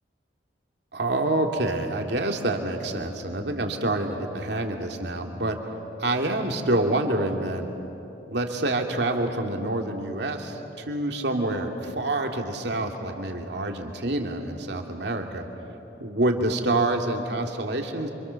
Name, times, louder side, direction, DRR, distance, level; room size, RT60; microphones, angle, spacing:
voice 1, 0.9-5.6 6.0-7.7 8.3-15.5 16.0-18.1, right 2 dB, 65° right, 3 dB, 2.4 m, -27 dB
29.5 x 26.0 x 7.0 m, 2.9 s
head